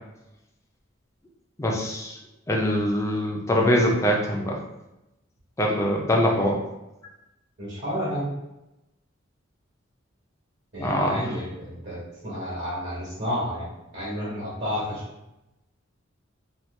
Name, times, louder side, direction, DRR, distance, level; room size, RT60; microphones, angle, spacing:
voice 1, 1.6-2.2 2.5-4.6 5.6-6.6 10.8-11.3, equal, 15° left, -1 dB, 0.4 m, -23 dB
voice 2, 7.6-8.3 10.7-15.0, equal, 55° right, -6 dB, 1.3 m, -31 dB
2.9 x 2.3 x 3.2 m, 0.93 s
head